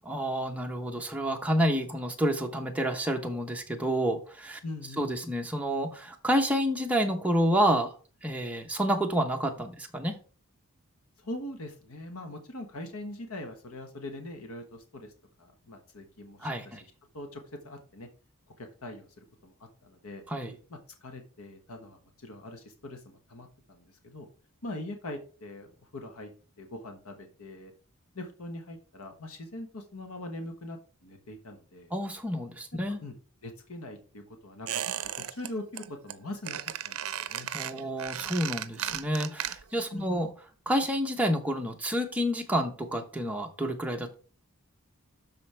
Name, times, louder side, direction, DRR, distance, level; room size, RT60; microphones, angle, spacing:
voice 1, 0.1-4.6 5.0-8.0 8.2-10.2 16.4-16.8 20.3-20.6 31.9-33.0 37.5-40.3 40.7-44.1, equal, 5° right, 2 dB, 1.0 m, -29 dB
voice 2, 4.6-5.1 11.2-15.1 15.4-16.8 17.1-18.1 18.6-20.2 20.7-24.3 24.6-26.3 26.6-27.7 28.1-31.9 32.9-33.1 33.4-37.5 39.9-40.2, left 1 dB, 85° left, 5 dB, 1.2 m, -42 dB
Squeak, 34.7-35.5 35.8-36.1 36.4-39.9 40.1-40.2, right 10 dB, 75° right, 0.5 m, -35 dB
12.0 x 4.4 x 3.4 m, 0.38 s
head